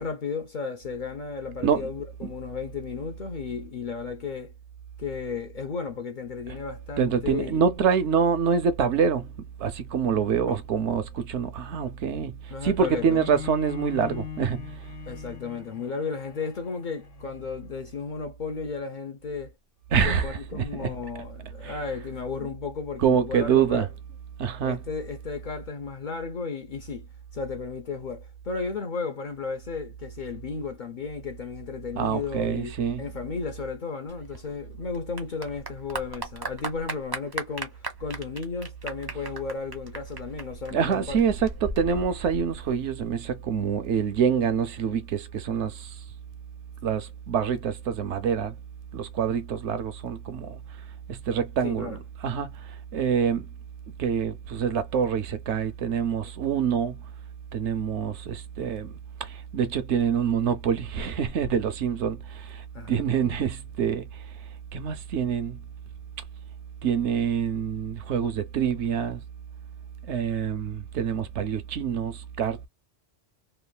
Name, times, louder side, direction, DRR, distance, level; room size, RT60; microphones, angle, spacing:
voice 1, 0.0-4.5 5.0-7.6 10.4-10.6 12.5-13.2 15.1-19.5 20.0-23.9 24.6-41.2 51.6-52.0 62.7-63.0, left 5 dB, 50° left, 0.6 m, -34 dB
voice 2, 7.0-9.3 9.6-12.3 12.6-14.7 19.9-20.9 21.6-21.8 23.0-23.9 24.4-24.8 32.0-33.0 40.7-45.9 46.8-48.5 48.9-50.6 51.1-52.5 52.9-53.5 54.0-56.9 57.5-64.0 64.7-65.6 66.8-69.2 70.1-72.7, right 7 dB, 75° right, 0.9 m, -26 dB
Bowed string instrument, 12.7-18.0, left 13 dB, 85° left, 1.2 m, -40 dB
Clapping / Applause, 34.1-43.1, right 3 dB, 30° right, 0.5 m, -37 dB
3.1 x 2.4 x 2.2 m
omnidirectional pair, 1.2 m